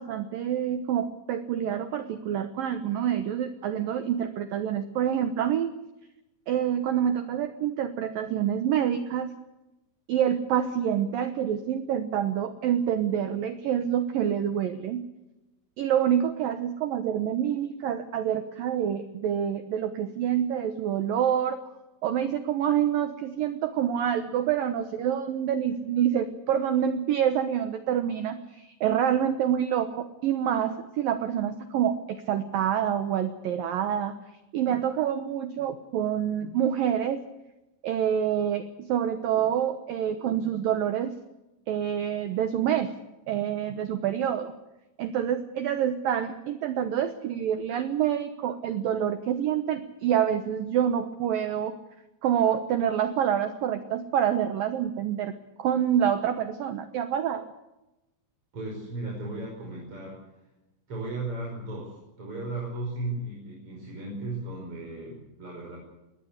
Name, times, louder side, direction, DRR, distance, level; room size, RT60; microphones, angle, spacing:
voice 1, 0.0-5.7 6.5-9.3 10.1-15.0 15.8-21.6 22.0-34.2 34.5-37.2 37.8-41.1 41.7-42.9 43.3-44.5 45.0-51.7 52.2-55.3 55.6-57.5, right 9 dB, 75° right, 10 dB, 2.2 m, -27 dB
voice 2, 58.5-60.2 60.9-65.8, right 2 dB, 30° right, -2 dB, 5.8 m, -35 dB
22.0 x 18.5 x 8.2 m, 0.96 s
omnidirectional pair, 5.4 m